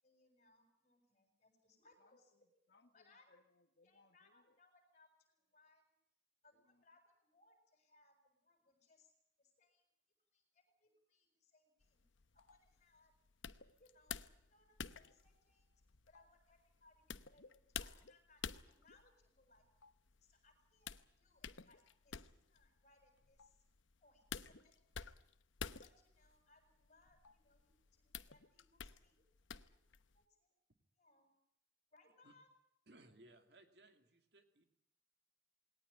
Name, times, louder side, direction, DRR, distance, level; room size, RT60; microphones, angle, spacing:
voice 1, 0.0-2.3 2.9-3.4 3.8-5.9 6.4-9.1 9.4-9.8 10.3-12.0 12.3-13.1 13.8-15.7 16.1-16.9 17.3-19.7 20.2-22.2 22.5-23.6 24.0-24.7 25.8-29.8 30.1-30.5 31.0-31.3 31.9-32.5, left 2 dB, 40° left, 5 dB, 6.9 m, -71 dB
voice 2, 2.0-4.6 6.5-6.8 20.3-20.4, left 3 dB, 60° left, 7 dB, 1.2 m, -73 dB
sound 1, 11.8-30.2, left 7 dB, 90° left, 0.9 m, -52 dB
voice 3, 32.9-34.6, right 1 dB, 60° right, 7 dB, 2.4 m, -64 dB
20.0 x 18.5 x 10.0 m, 0.77 s
head